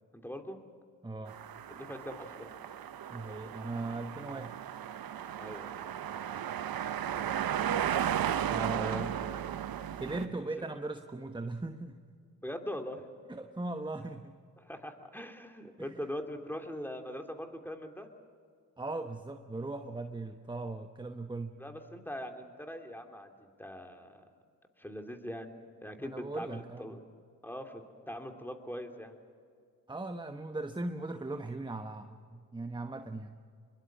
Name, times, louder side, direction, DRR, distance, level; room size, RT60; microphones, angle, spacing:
voice 1, 0.1-0.6 1.7-2.5 5.4-5.8 7.1-7.3 8.7-9.4 10.2-10.6 12.4-13.0 14.6-18.1 21.6-24.3 24.8-27.0 27.4-29.1, equal, 5° left, 4 dB, 3.0 m, -42 dB
voice 2, 1.0-1.4 3.1-4.6 8.5-9.2 10.0-12.0 13.3-14.4 15.8-16.0 18.8-21.6 26.0-27.0 29.9-33.4, right 2 dB, 10° right, 7 dB, 1.2 m, -39 dB
sound 1, 1.3-10.3, right 10 dB, 55° right, 1.0 m, -35 dB
23.0 x 22.0 x 7.5 m, 2.1 s
hypercardioid pair, 45°, 42 cm